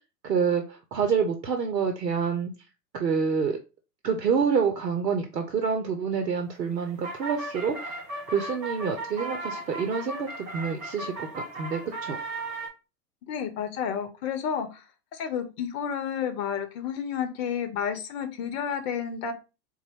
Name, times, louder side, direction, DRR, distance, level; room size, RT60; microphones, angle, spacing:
voice 1, 0.2-2.5 2.9-3.6 4.0-8.0 8.3-12.2, right 6 dB, 80° right, 5 dB, 0.8 m, -27 dB
sound 1, 6.5-12.7, right 2 dB, 35° right, 1.9 m, -36 dB
voice 2, 13.3-14.8 15.1-19.3, left 7 dB, 40° left, 8 dB, 0.8 m, -31 dB
4.0 x 2.2 x 4.3 m, 0.29 s
figure-of-eight pair, 100°, 48 cm